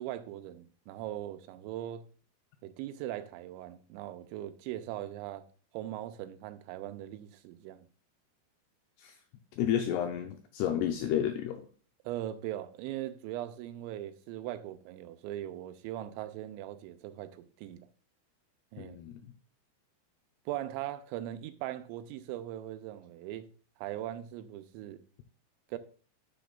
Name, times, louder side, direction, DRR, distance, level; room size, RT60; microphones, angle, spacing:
voice 1, 0.0-2.0 2.6-5.4 5.7-7.9 12.0-17.9 18.7-19.0 20.5-23.5 23.8-25.0 25.7-25.8, right 13 dB, 85° right, 2.9 m, -40 dB
voice 2, 9.6-11.7 18.8-19.2, left 9 dB, 85° left, 2.4 m, -31 dB
10.0 x 6.9 x 2.3 m
omnidirectional pair, 5.3 m